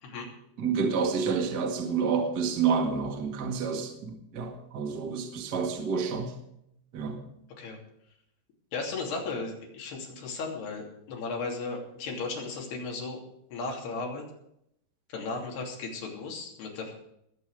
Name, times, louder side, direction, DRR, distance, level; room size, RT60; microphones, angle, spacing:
voice 1, 0.6-6.3 6.9-7.2, right 5 dB, 35° right, 2 dB, 1.9 m, -29 dB
voice 2, 8.7-13.2 13.5-14.2 15.1-16.9, left 3 dB, 75° left, 0 dB, 5.0 m, -35 dB
21.0 x 8.7 x 5.0 m, 0.76 s
omnidirectional pair, 4.6 m